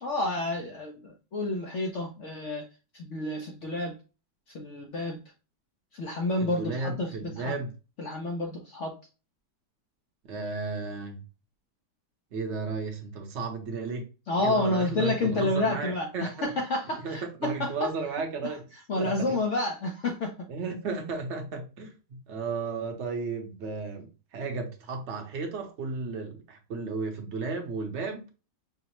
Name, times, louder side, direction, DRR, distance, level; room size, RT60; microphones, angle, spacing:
voice 1, 0.0-2.7 2.9-3.9 4.5-5.2 5.9-7.5 8.0-8.9 14.3-18.6 18.9-20.5, left 2 dB, 65° left, 0.7 m, -30 dB
voice 2, 6.4-7.7 10.2-11.2 12.3-14.0 14.4-16.3 17.0-18.6 19.0-19.4 20.5-28.3, right 4 dB, 50° right, 0.9 m, -34 dB
5.4 x 2.0 x 2.9 m
omnidirectional pair, 1.9 m